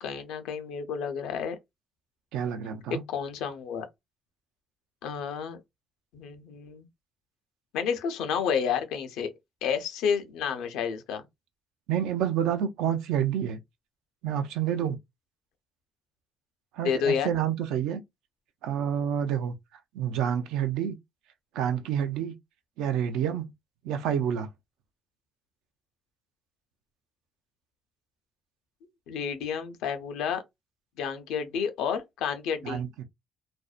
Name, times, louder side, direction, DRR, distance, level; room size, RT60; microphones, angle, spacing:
voice 1, 0.0-1.6 3.1-3.9 5.0-5.6 6.1-6.9 7.7-9.3 9.6-11.2 16.8-17.3 29.1-30.4 31.0-32.8, left 7 dB, 85° left, 0.5 m, -30 dB
voice 2, 2.3-3.0 11.9-13.6 14.2-15.0 16.7-18.0 18.6-19.5 19.9-21.0 21.5-22.3 22.8-23.5 23.8-24.5 32.6-33.1, right 9 dB, 85° right, 0.4 m, -28 dB
2.5 x 2.1 x 2.3 m
supercardioid pair, 80°, 0 cm